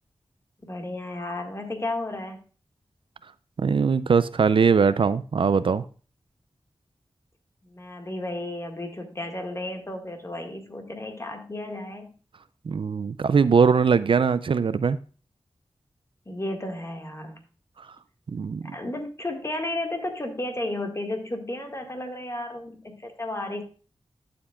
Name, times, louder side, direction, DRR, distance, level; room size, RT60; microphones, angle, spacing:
voice 1, 0.6-2.4 7.6-12.1 16.3-17.4 18.6-23.6, left 1 dB, 30° left, 3 dB, 1.7 m, -33 dB
voice 2, 3.6-5.8 12.7-15.0 17.8-17.9 18.3-18.7, right 5 dB, 60° right, 15 dB, 0.4 m, -21 dB
11.5 x 7.2 x 2.3 m, 0.38 s
wide cardioid pair, 65°, 10 cm